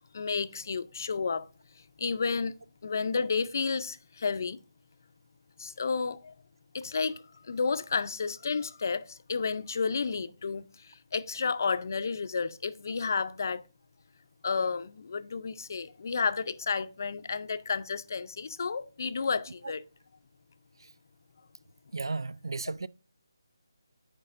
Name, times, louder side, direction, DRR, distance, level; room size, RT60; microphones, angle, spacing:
voice 1, 0.1-1.5 2.0-2.5 2.8-4.6 5.6-6.3 6.7-10.6 11.1-13.6 14.4-19.8, left 5 dB, 45° left, 0.4 m, -31 dB
voice 2, 21.9-22.9, right 3 dB, 80° right, 0.3 m, -34 dB
9.7 x 4.6 x 2.5 m
figure-of-eight pair, 165°, 2 cm